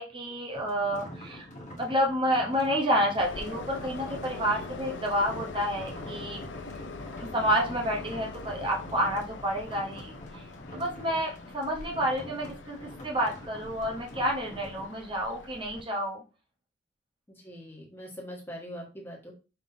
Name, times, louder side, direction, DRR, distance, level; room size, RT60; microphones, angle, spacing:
voice 1, 0.0-1.5 1.8-6.8 7.2-10.4 10.7-16.2, equal, 25° right, 0 dB, 0.8 m, -29 dB
sound 1, 0.5-14.9, equal, 40° left, 1.0 m, -45 dB
Train, 3.2-15.8, left 3 dB, 75° left, 0.5 m, -43 dB
voice 2, 17.3-19.3, equal, 10° left, -3 dB, 1.6 m, -42 dB
5.6 x 3.4 x 2.7 m, 0.32 s
head